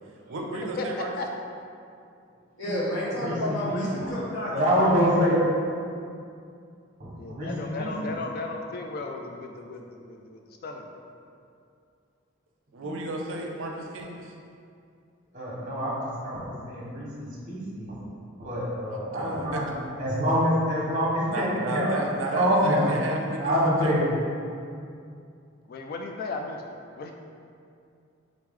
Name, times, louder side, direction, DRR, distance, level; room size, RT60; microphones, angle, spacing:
voice 1, 0.3-1.1 12.7-14.3 18.9-19.6 21.3-23.6 23.8-24.0, right 1 dB, 75° right, 1 dB, 0.5 m, -33 dB
voice 2, 2.6-4.5 4.8-4.9, left 1 dB, 70° left, -7 dB, 1.1 m, -30 dB
voice 3, 3.2-4.1 4.5-5.4 7.0-8.1 15.3-17.9 18.4-19.7 20.0-22.0 22.3-22.9 23.4-24.0, equal, 45° right, -6 dB, 1.1 m, -26 dB
voice 4, 7.2-11.1 25.7-26.6 27.0-27.1, left 3 dB, 50° left, 3 dB, 0.3 m, -36 dB
3.8 x 3.1 x 3.6 m, 2.4 s
head